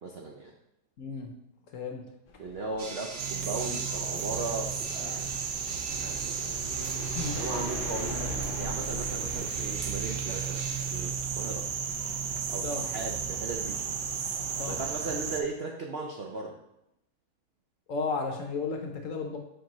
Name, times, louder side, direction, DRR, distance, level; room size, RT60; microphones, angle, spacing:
voice 1, 0.0-0.5 2.4-5.3 5.9-6.6 7.3-11.7 12.5-13.8 14.7-16.6, right 3 dB, 70° right, 1 dB, 0.5 m, -37 dB
voice 2, 1.0-1.3 1.7-2.0 7.1-7.4 12.6-12.8 14.6-14.8 17.9-19.4, left 4 dB, 60° left, 3 dB, 0.9 m, -33 dB
sound 1, 2.3-14.9, left 3 dB, 80° left, 0.4 m, -44 dB
sound 2, 2.8-7.9 8.8-11.1, right 3 dB, 55° right, 1.3 m, -44 dB
sound 3, 3.2-15.4, right 7 dB, 90° right, 1.3 m, -33 dB
7.4 x 4.6 x 3.0 m, 0.84 s
omnidirectional pair, 1.8 m